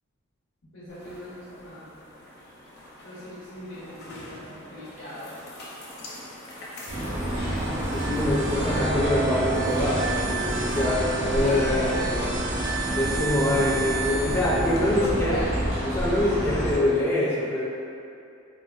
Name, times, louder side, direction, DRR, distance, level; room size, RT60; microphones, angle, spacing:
voice 1, 0.7-1.9 3.0-5.4 8.1-8.9 10.5-12.1 14.9-15.7, equal, 90° left, -12 dB, 0.8 m, -39 dB
sound 1, 0.9-15.1, left 1 dB, 55° left, 0.6 m, -44 dB
sound 2, 6.9-16.8, equal, 85° right, 1.3 m, -28 dB
sound 3, 7.4-15.1, right 4 dB, 60° right, 0.4 m, -33 dB
voice 2, 7.9-12.3 12.9-15.4 15.8-17.6, left 1 dB, 15° left, -7 dB, 0.3 m, -25 dB
4.3 x 2.4 x 2.3 m, 2.6 s
head